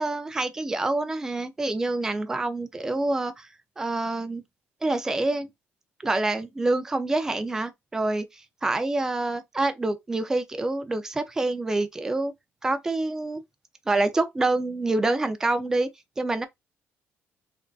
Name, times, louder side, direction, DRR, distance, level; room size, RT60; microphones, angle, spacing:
voice 1, 0.0-3.5 3.8-4.4 4.8-5.5 6.0-8.3 8.6-12.3 12.6-13.4 13.9-15.9 16.2-16.5, right 2 dB, 10° right, 0.4 m, -26 dB
3.4 x 2.6 x 2.3 m
cardioid pair, 165°, 5 cm